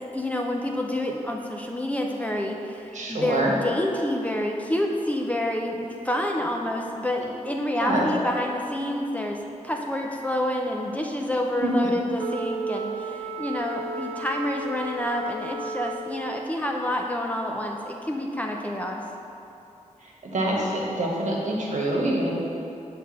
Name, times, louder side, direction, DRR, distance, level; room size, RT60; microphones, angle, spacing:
voice 1, 0.0-19.0, left 1 dB, 10° left, 0 dB, 0.4 m, -28 dB
voice 2, 2.9-3.5 7.8-8.1 11.6-11.7 20.0-22.3, right 1 dB, 65° right, -3 dB, 1.3 m, -26 dB
Wind instrument woodwind instrument, 12.2-16.5, right 3 dB, 50° right, 0.4 m, -34 dB
7.7 x 3.4 x 6.3 m, 2.8 s
wide cardioid pair, 140°, 13 cm